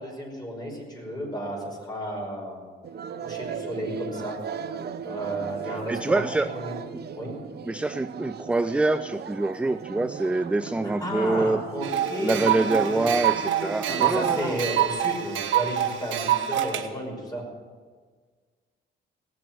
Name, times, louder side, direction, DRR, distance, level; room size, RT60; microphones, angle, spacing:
voice 1, 0.0-2.6 3.2-4.4 5.1-6.2 6.5-6.7 7.2-7.4 10.8-13.1 13.8-17.5, equal, 20° left, 0 dB, 5.4 m, -33 dB
sound 1, 2.8-14.9, right 7 dB, 55° right, 0.8 m, -37 dB
voice 2, 5.9-6.5 7.6-11.6 12.2-14.6, right 2 dB, 5° right, 13 dB, 0.3 m, -25 dB
sound 2, 11.8-16.8, right 11 dB, 75° right, 1.2 m, -26 dB
17.5 x 7.7 x 7.5 m, 1.5 s
cardioid pair, 90°, 20 cm